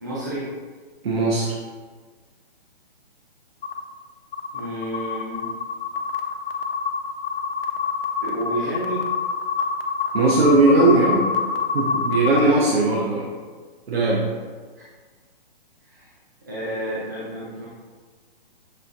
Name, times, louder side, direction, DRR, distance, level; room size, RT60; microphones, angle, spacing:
voice 1, 0.0-0.5 4.5-5.5 8.2-9.0 12.4-12.6 15.9-16.1 16.5-17.7, right 1 dB, 20° right, -8 dB, 0.5 m, -30 dB
voice 2, 1.0-1.5 10.1-11.3 11.7-13.3 13.9-14.2, right 2 dB, 80° right, -4 dB, 0.9 m, -18 dB
sound 1, 3.6-3.8 4.3-12.5, left 5 dB, 70° left, 0.6 m, -26 dB
6.4 x 2.6 x 2.4 m, 1.5 s
hypercardioid pair, 175°, 30 cm